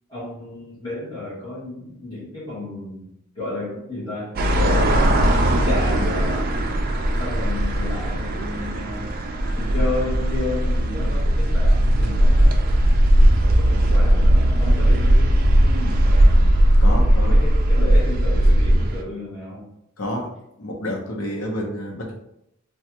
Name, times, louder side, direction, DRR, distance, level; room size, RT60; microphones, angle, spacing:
voice 1, 0.1-6.5 7.2-9.1 9.5-12.6 13.4-19.6, left 2 dB, 20° left, -13 dB, 1.3 m, -32 dB
sound 1, 4.4-19.0, right 1 dB, 45° right, 0.3 m, -18 dB
voice 2, 16.8-17.4 20.0-20.3 20.6-22.2, equal, 75° left, -1 dB, 0.8 m, -29 dB
3.3 x 2.3 x 2.9 m, 0.80 s
head